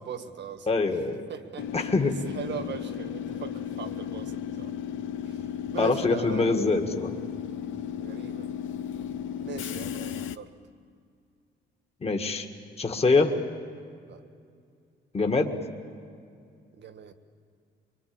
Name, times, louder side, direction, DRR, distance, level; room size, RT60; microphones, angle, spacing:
voice 1, 0.0-0.8 1.3-1.7 2.4-4.3 4.6-4.7 5.7-6.5 8.0-8.5 9.4-10.5 14.1-14.2 16.8-17.1, right 7 dB, 60° right, 9 dB, 1.7 m, -39 dB
voice 2, 0.7-1.2 1.7-2.2 5.8-7.1 12.0-12.5 12.8-13.3 15.1-15.6, left 3 dB, 30° left, 4 dB, 1.8 m, -24 dB
Train / Subway metro underground, 1.6-10.4, left 8 dB, 80° left, 0.7 m, -35 dB
24.5 x 22.0 x 8.7 m, 2.3 s
cardioid pair, 90°, 20 cm